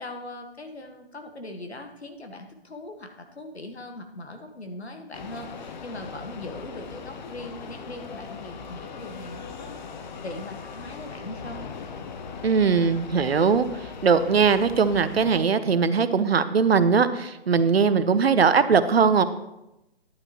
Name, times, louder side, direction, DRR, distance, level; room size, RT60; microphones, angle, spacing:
voice 1, 0.0-11.7, left 1 dB, 85° left, 5 dB, 1.6 m, -40 dB
sound 1, 5.1-15.4, left 5 dB, 45° left, 0.9 m, -39 dB
voice 2, 12.4-13.7 14.0-19.2, right 5 dB, 70° right, 13 dB, 0.8 m, -20 dB
11.0 x 9.7 x 3.0 m, 0.92 s
figure-of-eight pair, 140°, 31 cm